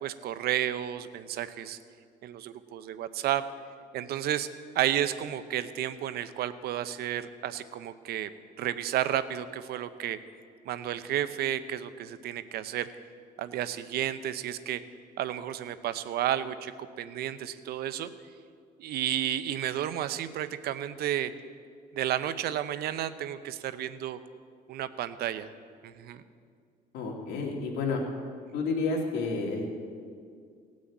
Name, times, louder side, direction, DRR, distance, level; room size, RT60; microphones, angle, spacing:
voice 1, 0.0-1.8 2.2-3.4 3.9-4.5 4.7-8.3 8.6-10.2 10.7-12.9 13.4-14.8 15.2-18.1 18.8-21.3 21.9-24.2 24.7-25.5 25.8-26.2, right 11 dB, 70° right, 13 dB, 0.7 m, -32 dB
voice 2, 26.9-28.0 28.5-29.7, left 4 dB, 90° left, 0 dB, 2.6 m, -30 dB
17.0 x 6.3 x 8.3 m, 2.2 s
cardioid pair, 110°, 17 cm